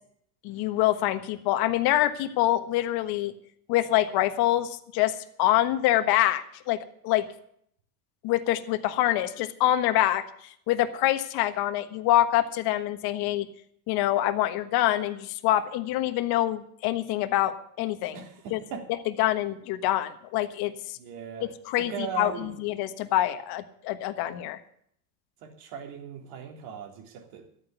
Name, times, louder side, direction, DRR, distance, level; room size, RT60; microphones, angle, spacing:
voice 1, 0.4-3.3 3.7-6.8 7.0-7.2 8.2-13.5 13.9-18.2 18.5-18.6 18.9-21.0 21.4-24.6, left 14 dB, 55° left, 9 dB, 1.4 m, -25 dB
voice 2, 18.1-18.9 21.0-21.5 21.8-22.6 25.4-27.5, right 7 dB, 60° right, 3 dB, 3.4 m, -38 dB
13.5 x 9.0 x 8.0 m, 0.67 s
hypercardioid pair, 100°, 45 cm